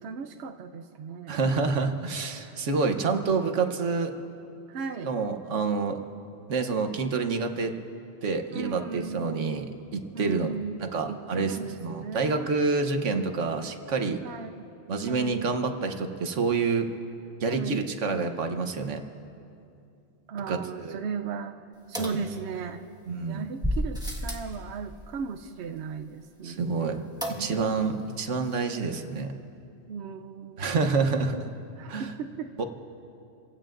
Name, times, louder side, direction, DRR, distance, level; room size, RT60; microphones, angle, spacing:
voice 1, 0.0-1.4 2.4-2.6 3.1-3.4 4.7-5.1 8.5-9.6 10.1-12.5 14.2-14.6 15.1-15.4 17.5-17.8 20.3-21.6 21.9-22.8 23.3-27.8 29.9-31.0 31.8-32.6, right 5 dB, 65° right, 5 dB, 0.9 m, -37 dB
voice 2, 1.3-4.1 5.0-6.0 6.5-7.7 8.2-10.5 10.8-14.2 14.9-16.9 17.4-19.0 20.5-21.0 23.1-23.5 26.4-27.0 27.4-29.3 30.6-31.5 31.9-32.1 32.6-32.7, right 4 dB, 85° right, 6 dB, 1.3 m, -28 dB
sound 1, 21.9-22.9 23.6-24.5 27.2-27.8 28.1-28.2 28.4-28.5, equal, 5° right, 1.5 m, -32 dB
30.0 x 16.5 x 2.6 m, 2.6 s
omnidirectional pair, 1.2 m